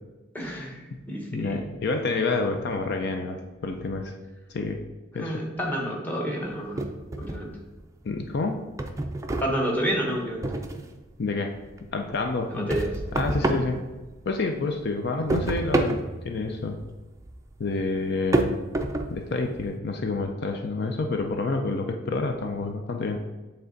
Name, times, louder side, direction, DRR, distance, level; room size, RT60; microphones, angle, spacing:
voice 1, 0.3-1.6 5.2-6.9 7.2-7.6 9.4-10.5 12.5-12.9, equal, 10° left, -1 dB, 1.1 m, -29 dB
voice 2, 1.3-4.1 4.5-4.8 5.1-5.4 8.0-8.6 11.2-11.5 11.9-12.7 13.1-13.8 14.3-16.8 17.6-18.6 19.1-23.2, left 3 dB, 55° left, 4 dB, 0.5 m, -28 dB
sound 1, 6.8-7.8 8.2-11.1 11.4-14.5 14.8-19.7, right 2 dB, 15° right, 0.4 m, -29 dB
7.9 x 3.3 x 3.9 m, 1.2 s
head